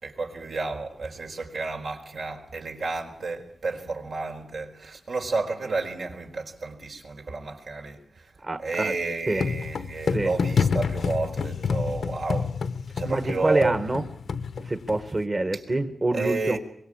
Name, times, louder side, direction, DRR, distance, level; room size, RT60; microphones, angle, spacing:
voice 1, 0.0-8.3 8.6-12.5 12.9-13.8 16.1-16.6, right 3 dB, 80° right, 4.3 m, -31 dB
voice 2, 8.4-8.9 9.3-9.4 10.1-10.3 13.0-14.0 14.6-16.6, right 2 dB, 35° right, 1.4 m, -26 dB
sound 1, 9.4-15.2, left 5 dB, 85° left, 1.1 m, -28 dB
24.5 x 22.5 x 8.7 m
wide cardioid pair, 100°, 0 cm